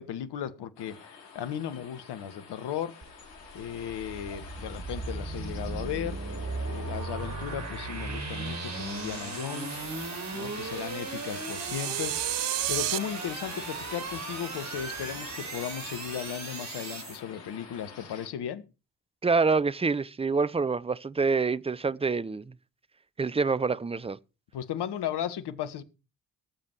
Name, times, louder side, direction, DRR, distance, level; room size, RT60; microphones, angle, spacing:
voice 1, 0.0-3.0 3.5-6.2 6.7-9.8 10.3-12.2 12.7-18.6 24.5-25.8, left 9 dB, 55° left, 1.6 m, -36 dB
sound 1, 0.8-18.3, left 5 dB, 80° left, 3.3 m, -48 dB
sound 2, 3.0-17.2, right 3 dB, 35° right, 4.2 m, -37 dB
sound 3, 11.2-13.0, right 17 dB, 60° right, 0.9 m, -31 dB
voice 2, 19.2-22.5 23.2-24.2, right 4 dB, 10° right, 0.7 m, -26 dB
18.5 x 7.5 x 4.7 m
figure-of-eight pair, 45°, 48 cm